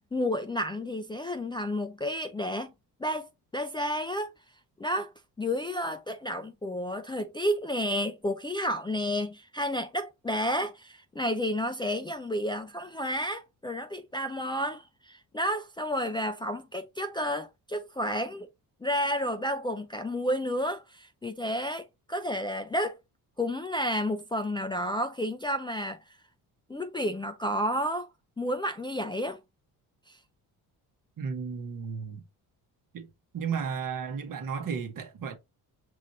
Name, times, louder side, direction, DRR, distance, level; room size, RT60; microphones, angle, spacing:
voice 1, 0.0-2.7 3.0-4.3 4.8-5.1 5.4-18.5 18.8-23.0 23.4-26.0 26.7-28.1 28.4-29.4 30.1-30.2, equal, 10° left, 0.4 m, -31 dB
voice 2, 31.2-32.2 32.9-33.1 33.3-35.4, right 6 dB, 50° right, 1.0 m, -34 dB
5.9 x 3.1 x 2.6 m
supercardioid pair, 65°, 43 cm